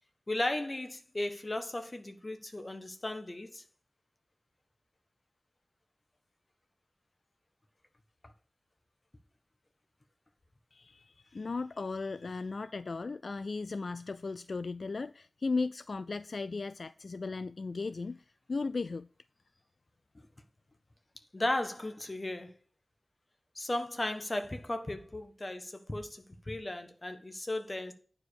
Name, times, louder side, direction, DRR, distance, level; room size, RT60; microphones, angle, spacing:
voice 1, 0.3-3.6 21.3-22.5 23.5-27.9, left 1 dB, 30° left, 1.3 m, -35 dB
voice 2, 10.7-19.1, left 3 dB, 65° left, 0.3 m, -36 dB
9.5 x 4.9 x 6.4 m
wide cardioid pair, 85°, 0 cm